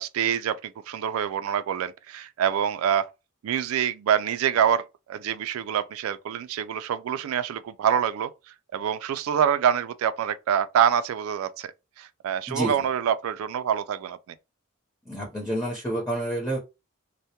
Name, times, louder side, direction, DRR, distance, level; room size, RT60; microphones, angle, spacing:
voice 1, 0.0-3.1 3.4-8.3 8.7-11.7 12.0-14.2, right 8 dB, 90° right, 0.3 m, -26 dB
voice 2, 15.1-16.6, right 1 dB, 15° left, 0.7 m, -28 dB
2.2 x 2.1 x 2.8 m
head